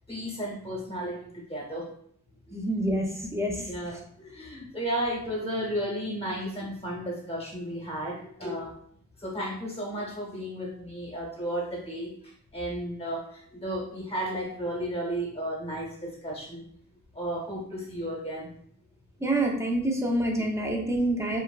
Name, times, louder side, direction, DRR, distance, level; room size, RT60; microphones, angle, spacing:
voice 1, 0.1-1.9 3.7-8.8 9.2-16.6 17.1-18.5, equal, 20° left, -2 dB, 0.8 m, -33 dB
voice 2, 2.5-3.0 3.3-3.5 19.2-21.4, right 1 dB, 10° right, 0 dB, 0.4 m, -26 dB
3.0 x 2.0 x 2.3 m, 0.64 s
wide cardioid pair, 135°, 31 cm